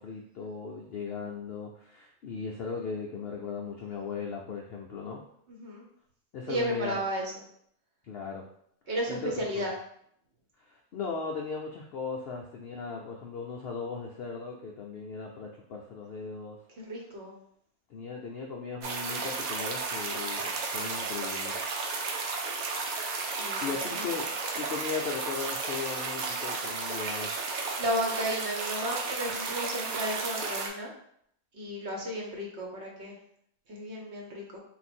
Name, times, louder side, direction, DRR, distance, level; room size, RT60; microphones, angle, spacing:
voice 1, 0.0-5.2 6.3-7.0 8.0-8.4 9.1-9.6 10.6-16.6 17.9-21.6 23.6-24.3 24.6-27.3, left 5 dB, 70° left, 0 dB, 0.6 m, -37 dB
voice 2, 5.5-5.8 6.5-7.4 8.9-9.7 16.8-17.3 23.3-24.0 27.8-30.9 31.5-33.2 33.7-34.6, equal, 55° right, -1 dB, 1.1 m, -33 dB
sound 1, 18.8-30.7, right 4 dB, 75° right, 1.2 m, -33 dB
3.8 x 2.5 x 4.2 m, 0.68 s
omnidirectional pair, 1.5 m